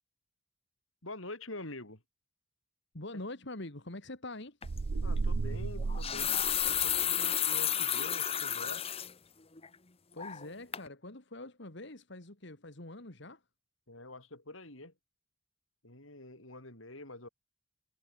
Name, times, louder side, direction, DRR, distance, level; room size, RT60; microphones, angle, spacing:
voice 1, 1.0-2.0 3.1-3.2 5.0-8.8 13.9-14.9 15.8-17.3, left 2 dB, 75° left, 6.8 m, -46 dB
voice 2, 2.9-4.6 10.1-13.4, left 2 dB, 60° left, 2.3 m, -44 dB
sound 1, 4.6-4.8 5.8-9.1 9.6-9.7 10.2-10.5 10.7-10.9, left 10 dB, 30° left, 1.2 m, -31 dB
sound 2, 4.6-7.0, right 3 dB, 75° right, 0.6 m, -34 dB
head